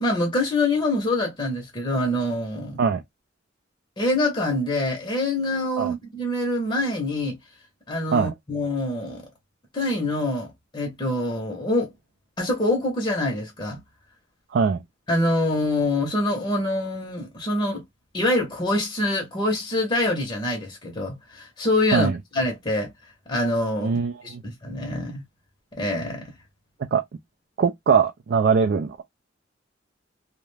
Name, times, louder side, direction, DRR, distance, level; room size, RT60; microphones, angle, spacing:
voice 1, 0.0-2.8 4.0-7.4 7.9-9.3 9.7-11.9 12.4-13.8 15.1-17.8 18.1-22.9 23.3-25.2 25.7-26.3, left 1 dB, 25° left, 0.7 m, -25 dB
voice 2, 23.8-24.4 26.9-27.0 27.6-29.0, right 6 dB, 55° right, 0.3 m, -21 dB
2.4 x 2.1 x 3.1 m
head